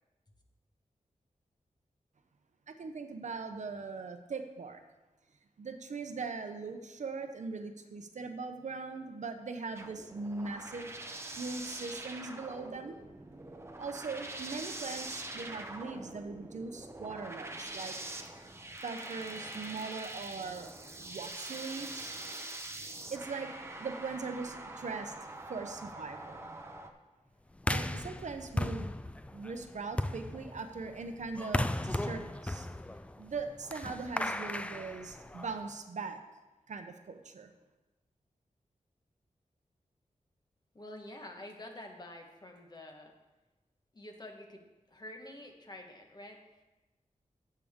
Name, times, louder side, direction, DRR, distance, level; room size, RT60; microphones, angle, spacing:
voice 1, 2.7-4.8 5.6-10.9 11.4-13.0 13.8-18.0 18.8-22.2 22.8-23.5 23.8-25.1 25.5-26.5 27.7-28.9 29.3-32.7 33.2-36.2 36.7-37.5, right 4 dB, 70° right, 6 dB, 0.8 m, -40 dB
sound 1, 9.8-26.9, right 2 dB, 20° right, 0.8 m, -44 dB
sound 2, 27.6-35.7, left 1 dB, 10° left, 0.3 m, -36 dB
voice 2, 40.7-43.1 43.9-46.6, left 1 dB, 30° left, 3 dB, 1.3 m, -48 dB
15.5 x 6.7 x 3.7 m, 1.1 s
wide cardioid pair, 130°, 13 cm